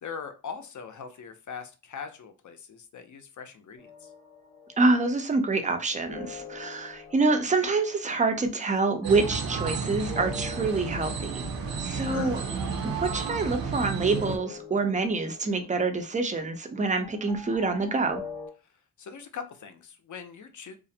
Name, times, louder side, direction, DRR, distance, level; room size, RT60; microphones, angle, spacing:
voice 1, 0.0-4.1 11.8-12.4 19.0-20.7, left 6 dB, 55° left, 0.5 m, -41 dB
sound 1, 3.8-18.5, left 5 dB, 15° left, 0.8 m, -45 dB
voice 2, 4.8-11.4 11.8-12.4 12.8-18.2, right 3 dB, 20° right, 0.4 m, -26 dB
sound 2, 9.0-14.4, right 5 dB, 70° right, 0.6 m, -32 dB
2.4 x 2.0 x 2.6 m
wide cardioid pair, 105°, 36 cm